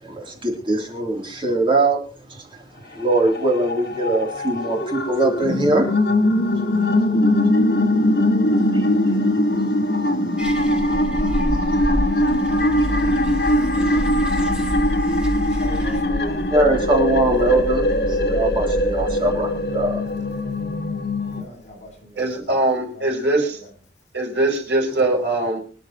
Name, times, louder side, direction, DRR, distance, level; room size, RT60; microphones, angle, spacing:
voice 1, 0.0-2.0 2.3-5.9 6.5-7.0 7.5-7.6 8.7-9.4 10.0-10.1 10.6-11.2 11.5-11.8 12.2-12.3 12.8-13.1 13.8-13.9 16.5-20.3, right 2 dB, 30° right, 0 dB, 3.0 m, -23 dB
sound 1, 3.0-21.4, left 1 dB, 65° left, 1.7 m, -21 dB
sound 2, 10.4-16.0, equal, 5° right, 2.8 m, -29 dB
sound 3, 12.5-21.3, equal, 20° left, 7.3 m, -30 dB
voice 2, 15.5-16.5 21.4-23.1 23.5-23.7, equal, 40° left, -2 dB, 6.9 m, -41 dB
voice 3, 22.2-23.6 24.1-25.6, right 2 dB, 75° right, 0 dB, 5.4 m, -21 dB
25.5 x 10.5 x 2.9 m, 0.38 s
head